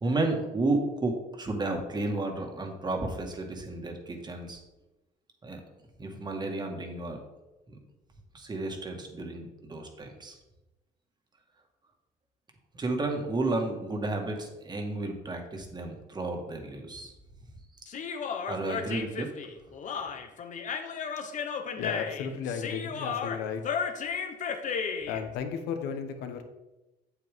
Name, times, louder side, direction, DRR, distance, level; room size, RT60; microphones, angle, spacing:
voice 1, 0.0-4.6 5.4-5.6 6.0-7.2 7.7-7.8 8.3-10.4 12.7-17.1 18.5-19.3, right 2 dB, 25° right, 3 dB, 1.8 m, -32 dB
Human voice, 17.9-25.2, left 6 dB, 50° left, 1.0 m, -34 dB
voice 2, 21.8-23.6 25.1-26.4, left 7 dB, 90° left, 7 dB, 1.2 m, -34 dB
8.3 x 8.3 x 3.6 m, 1.0 s
cardioid pair, 110°, 17 cm